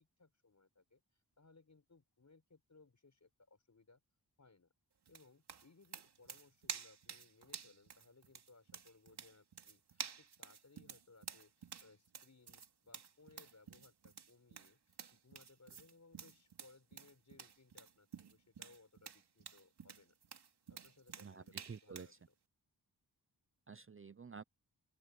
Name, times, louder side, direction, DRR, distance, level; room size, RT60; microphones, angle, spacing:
voice 1, 0.0-4.0 4.4-4.7 5.1-20.1 20.7-22.3, left 3 dB, 45° left, 6.1 m, -65 dB
sound 1, 5.1-22.1, right 6 dB, 90° right, 2.6 m, -51 dB
voice 2, 21.2-22.1 23.7-24.4, right 5 dB, 35° right, 0.6 m, -51 dB
open air
wide cardioid pair, 65°, 39 cm